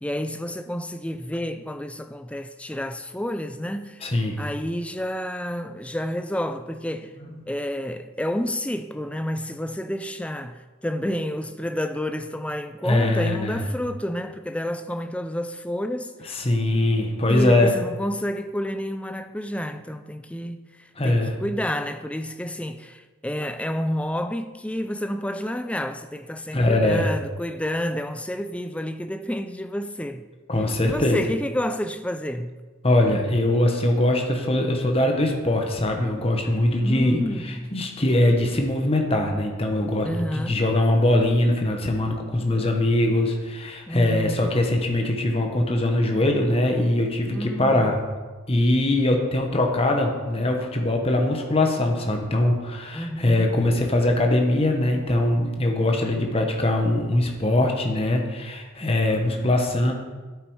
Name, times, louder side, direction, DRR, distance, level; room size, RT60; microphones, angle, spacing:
voice 1, 0.0-4.1 4.4-7.2 7.5-16.3 17.3-30.3 30.8-32.5 36.8-37.8 40.0-40.6 43.9-44.6 47.3-47.9 52.9-53.5, equal, 5° left, 0.4 m, -30 dB
voice 2, 4.0-4.4 12.8-13.7 16.3-17.7 21.0-21.3 26.5-27.1 30.5-31.2 32.8-48.0 48.5-59.9, left 1 dB, 25° left, 1.2 m, -22 dB
9.9 x 8.4 x 4.8 m
head